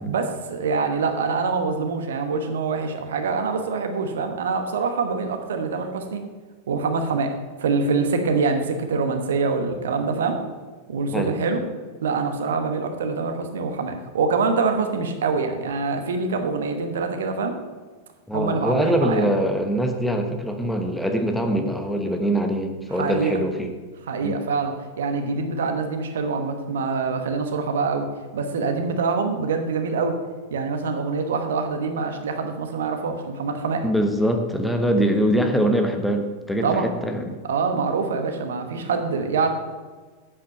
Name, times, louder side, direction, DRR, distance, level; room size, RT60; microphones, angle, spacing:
voice 1, 0.0-6.2 6.7-7.3 7.6-10.4 10.9-11.6 12.0-17.6 18.3-19.3 23.0-23.4 24.1-28.1 28.3-30.2 30.5-33.8 36.6-36.9 37.4-39.5, right 4 dB, 60° right, 6 dB, 1.2 m, -25 dB
voice 2, 18.3-23.7 24.2-24.4 33.8-37.4, equal, 5° left, 4 dB, 1.0 m, -23 dB
8.7 x 8.0 x 5.5 m, 1.4 s
figure-of-eight pair, 90°, 0 cm